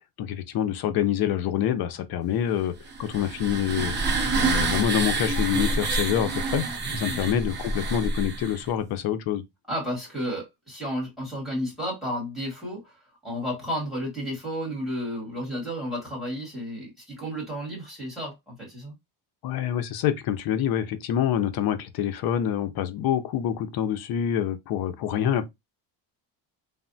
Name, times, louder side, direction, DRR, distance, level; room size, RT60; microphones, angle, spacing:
voice 1, 0.2-2.7 3.0-3.9 4.3-6.7 6.9-9.4 19.4-25.4, left 10 dB, 60° left, 0.5 m, -26 dB
sound 1, 2.9-8.7, right 3 dB, 25° right, 0.4 m, -27 dB
voice 2, 9.7-13.0 13.2-18.9, equal, ahead, 1.4 m, -32 dB
3.4 x 2.0 x 2.5 m
cardioid pair, 175°, 42 cm